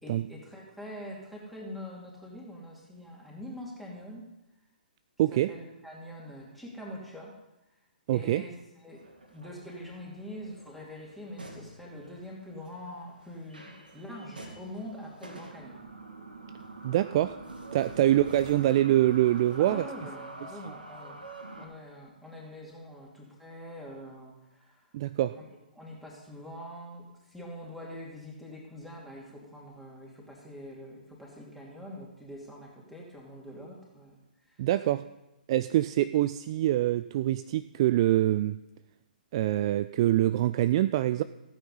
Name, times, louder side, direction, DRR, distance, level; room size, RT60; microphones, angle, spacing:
voice 1, 0.0-4.3 5.3-7.4 8.1-8.6 8.8-9.0 9.3-15.9 18.1-18.2 19.6-21.3 21.6-24.8 25.3-25.4 25.7-34.6 34.9-35.0, left 1 dB, ahead, -4 dB, 2.7 m, -44 dB
voice 2, 5.2-5.5 8.1-8.4 16.8-17.4 17.7-19.9 24.9-25.4 34.6-35.1 35.5-38.6 39.3-41.2, right 14 dB, 35° right, 12 dB, 0.3 m, -25 dB
sound 1, 8.9-21.7, right 2 dB, 75° right, 2.4 m, -46 dB
15.0 x 9.0 x 5.5 m, 0.96 s
figure-of-eight pair, 125°, 5 cm